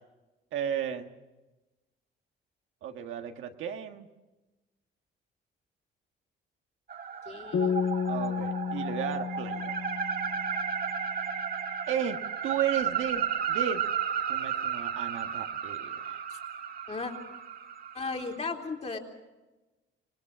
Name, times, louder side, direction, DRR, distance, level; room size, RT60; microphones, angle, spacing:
voice 1, 0.5-1.1 2.8-4.1 8.1-9.8 11.9-12.2 12.4-13.8 14.3-16.2, right 9 dB, 85° right, 5 dB, 1.6 m, -34 dB
sound 1, 6.9-18.4, right 7 dB, 50° right, 1.6 m, -33 dB
voice 2, 7.3-7.9 16.3-16.4 16.9-17.1 17.9-19.0, left 4 dB, 35° left, 2 dB, 3.7 m, -36 dB
sound 2, 7.5-11.0, left 6 dB, 70° left, 6.0 m, -32 dB
26.5 x 19.5 x 6.1 m, 1.1 s
cardioid pair, 90°, 20 cm